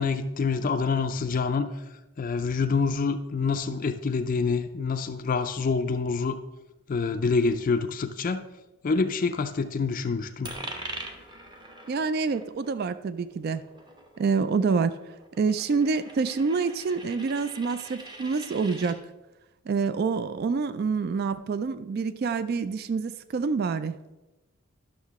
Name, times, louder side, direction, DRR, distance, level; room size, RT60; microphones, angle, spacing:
voice 1, 0.0-1.8 2.2-6.4 6.9-8.5 8.8-10.5, left 4 dB, 40° left, 8 dB, 0.4 m, -26 dB
Coin (dropping), 10.4-19.0, right 2 dB, 20° right, 0.9 m, -43 dB
voice 2, 11.9-13.6 14.2-15.0 15.4-19.0 19.7-24.0, right 4 dB, 45° right, 13 dB, 0.3 m, -27 dB
11.0 x 6.4 x 3.5 m, 1.0 s
head